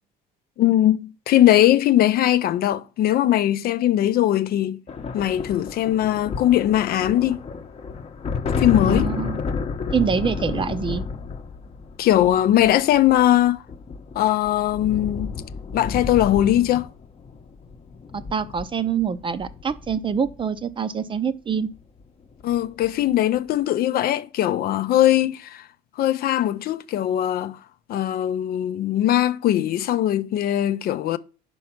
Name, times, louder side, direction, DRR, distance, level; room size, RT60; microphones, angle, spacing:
voice 1, 0.6-4.8 5.1-7.4 8.6-9.1 12.0-13.6 14.2-15.3 15.7-16.9 22.4-25.6 26.0-27.6 27.9-31.2, left 12 dB, 65° left, 0.5 m, -20 dB
sound 1, 4.9-20.6 21.8-22.0 22.3-23.0, left 5 dB, 35° left, 0.8 m, -31 dB
voice 2, 8.8-9.4 9.9-11.0 18.1-21.7, right 6 dB, 30° right, 0.6 m, -25 dB
5.3 x 4.6 x 5.8 m
cardioid pair, 110°, 17 cm